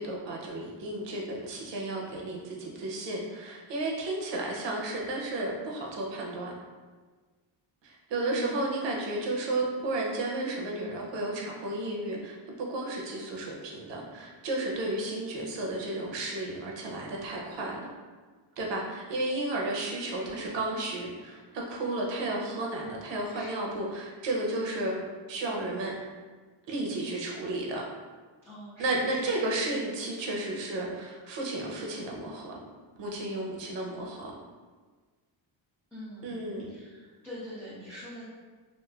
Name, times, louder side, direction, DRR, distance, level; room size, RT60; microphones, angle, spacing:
voice 1, 0.0-6.5 7.8-17.9 18.6-25.0 25.3-26.1 26.7-27.9 28.8-32.6 33.0-34.3 36.2-36.7, right 2 dB, 65° right, -1 dB, 0.7 m, -33 dB
voice 2, 8.2-8.7 23.3-23.6 28.4-29.3 35.9-38.2, equal, 5° left, -14 dB, 0.7 m, -44 dB
3.0 x 2.5 x 2.3 m, 1.4 s
wide cardioid pair, 155°, 46 cm